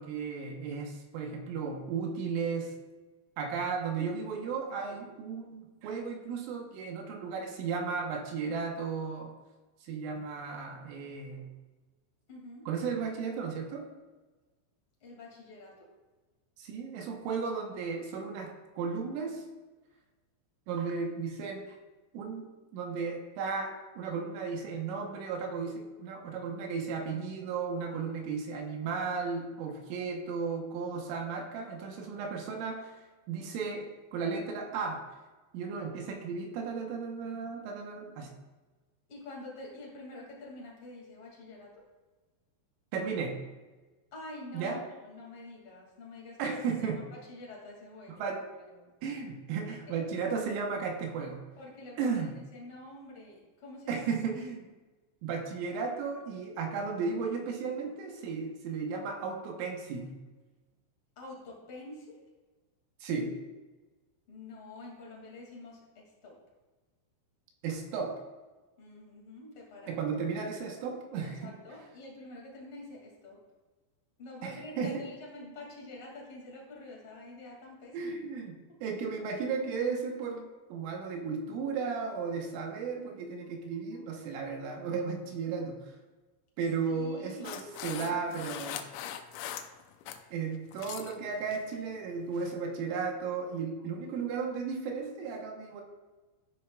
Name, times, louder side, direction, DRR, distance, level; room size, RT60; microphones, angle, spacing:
voice 1, 0.0-2.7 3.4-9.4 9.8-11.5 12.7-13.9 16.6-19.5 20.7-21.8 22.1-35.0 35.5-38.4 42.9-43.4 44.5-44.8 46.4-47.0 48.1-48.5 49.0-51.4 52.0-52.3 53.9-54.7 55.2-60.2 63.0-63.4 67.6-68.2 69.9-71.6 74.4-75.1 77.9-78.6 78.8-85.9 86.6-88.9 90.3-95.8, right 5 dB, 80° right, 2 dB, 3.5 m, -35 dB
voice 2, 12.3-12.7 15.0-15.9 39.1-41.8 44.1-46.9 47.3-48.3 48.7-48.9 49.9-50.1 51.6-52.2 52.5-54.1 61.2-62.3 64.3-66.4 68.8-70.0 71.4-73.4 74.2-78.2 86.9-87.6 87.9-88.2, left 2 dB, 40° left, -2 dB, 2.0 m, -47 dB
sound 1, 87.5-90.2 90.6-91.2 91.5-91.8 92.3-92.5, left 10 dB, 90° left, 3.4 m, -41 dB
13.5 x 10.0 x 2.4 m, 1.2 s
omnidirectional pair, 5.9 m